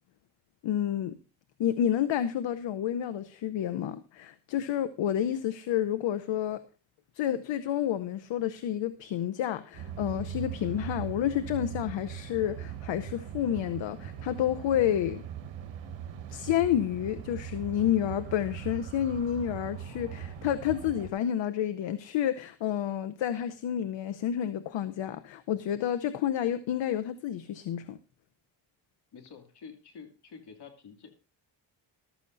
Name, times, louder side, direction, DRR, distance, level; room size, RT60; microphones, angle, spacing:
voice 1, 0.6-1.2 1.6-6.6 7.1-15.2 16.3-28.0, left 10 dB, 75° left, 12 dB, 0.8 m, -30 dB
sound 1, 9.7-21.1, right 9 dB, 75° right, 1.4 m, -40 dB
voice 2, 29.1-31.1, left 5 dB, 60° left, 5 dB, 2.6 m, -48 dB
14.0 x 13.0 x 2.6 m, 0.34 s
cardioid pair, 85°, 45 cm